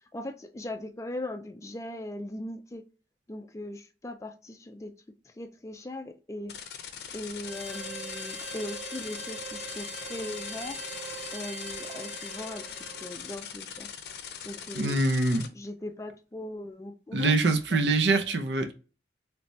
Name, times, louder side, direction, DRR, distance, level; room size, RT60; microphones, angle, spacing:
voice 1, 0.1-2.8 3.3-4.9 5.3-6.5 7.1-10.8 11.3-13.9 14.4-15.0 15.5-17.4 17.7-17.9, left 1 dB, 15° left, 0.3 m, -39 dB
sound 1, 6.5-15.5, left 8 dB, 65° left, 0.5 m, -41 dB
Harmonica, 7.4-13.4, right 2 dB, 5° right, 0.8 m, -41 dB
voice 2, 14.7-15.4 17.1-18.7, right 3 dB, 85° right, 0.6 m, -24 dB
3.3 x 3.1 x 2.7 m
head